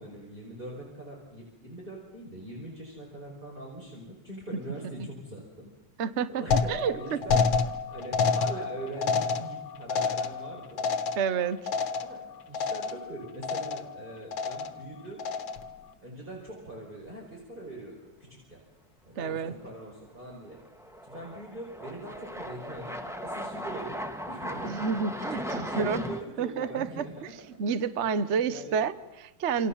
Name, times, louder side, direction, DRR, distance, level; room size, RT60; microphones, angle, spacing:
voice 1, 0.0-5.7 6.3-10.8 11.9-15.3 16.0-18.6 19.0-20.6 21.0-24.0 24.3-24.9 25.2-27.3 27.7-27.9 28.2-28.7 29.6-29.7, right 1 dB, 20° right, -1 dB, 5.1 m, -42 dB
voice 2, 6.0-6.4 6.7-7.4 11.2-11.7 19.2-19.5 24.6-27.0 27.6-29.7, right 6 dB, 40° right, 13 dB, 1.1 m, -29 dB
sound 1, 6.5-12.3 12.5-13.1 13.4-14.0 14.3-14.8 15.2-15.7, left 5 dB, 65° left, 2.0 m, -29 dB
sound 2, 8.7-8.9 9.3-9.4 12.2-12.3 13.7-13.9 14.3-14.4 19.7-19.8 20.5-26.2, equal, ahead, 1.7 m, -37 dB
28.0 x 27.0 x 7.3 m, 0.95 s
omnidirectional pair, 2.4 m